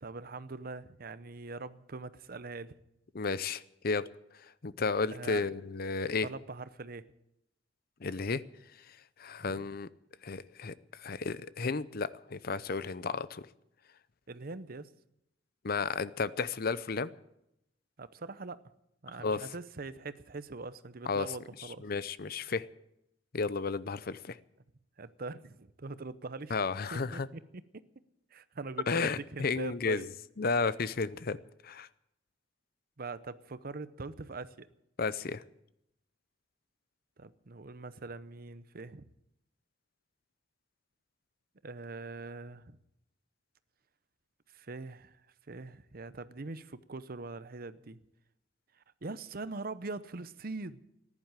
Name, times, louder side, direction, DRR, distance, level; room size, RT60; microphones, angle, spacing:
voice 1, 0.0-2.8 5.1-5.5 6.2-7.0 9.4-9.7 14.3-14.9 18.0-18.6 19.0-21.8 25.0-26.5 26.9-27.6 28.3-30.1 33.0-34.7 37.2-39.1 41.6-42.8 44.5-45.2 45.5-48.0 49.0-50.8, right 3 dB, 55° right, 14 dB, 0.8 m, -42 dB
voice 2, 3.1-4.0 4.6-6.3 8.0-8.4 9.2-9.9 10.2-13.5 15.6-17.1 19.2-19.5 21.1-21.3 21.8-22.7 23.3-24.4 26.5-27.3 28.9-30.0 30.4-31.4 31.6-31.9 35.0-35.4, left 4 dB, 55° left, 16 dB, 0.6 m, -33 dB
14.5 x 11.0 x 9.0 m, 0.80 s
head